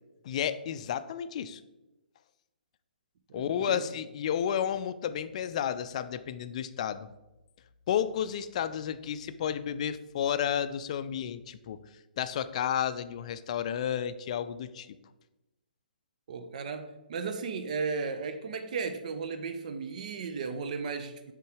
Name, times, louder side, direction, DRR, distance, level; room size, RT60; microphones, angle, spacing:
voice 1, 0.2-1.6 3.3-7.1 7.9-11.8 12.2-15.0, left 9 dB, 45° left, 12 dB, 0.4 m, -32 dB
voice 2, 3.3-3.9 16.3-21.3, right 5 dB, 50° right, 8 dB, 0.6 m, -35 dB
6.8 x 3.8 x 4.8 m, 1.0 s
figure-of-eight pair, 135°, 5 cm